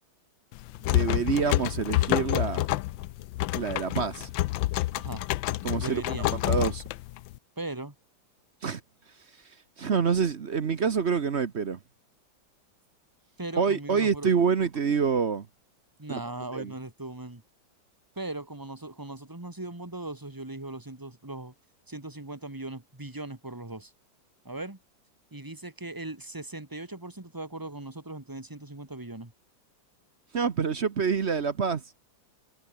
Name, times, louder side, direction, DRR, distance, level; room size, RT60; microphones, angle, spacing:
sound 1, 0.5-7.4, left 16 dB, 80° left, 1.3 m, -28 dB
voice 1, 0.9-2.7 3.5-4.3 5.6-6.0 6.3-6.8 8.6-8.8 9.8-11.8 13.6-15.5 16.1-16.2 16.5-16.7 30.3-31.8, right 6 dB, 45° right, 1.0 m, -26 dB
voice 2, 5.8-6.4 7.6-7.9 13.4-14.3 16.0-17.4 18.2-21.5 21.9-23.9 24.4-24.8 25.3-29.3, right 2 dB, 10° right, 2.2 m, -39 dB
omnidirectional pair, 2.1 m